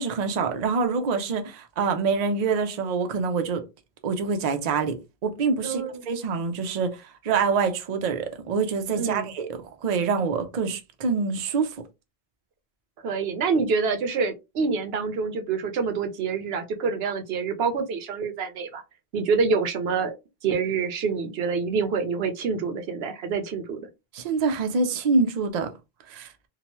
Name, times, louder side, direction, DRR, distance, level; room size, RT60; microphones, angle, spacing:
voice 1, 0.0-3.6 4.0-6.9 7.2-9.5 9.8-11.7 24.1-25.7 26.1-26.3, right 4 dB, 50° right, 0.5 m, -25 dB
voice 2, 5.6-6.0 8.9-9.3 13.0-18.8 19.1-20.1 20.4-23.8, right 5 dB, 70° right, 0.8 m, -26 dB
2.8 x 2.1 x 2.9 m
omnidirectional pair, 1.1 m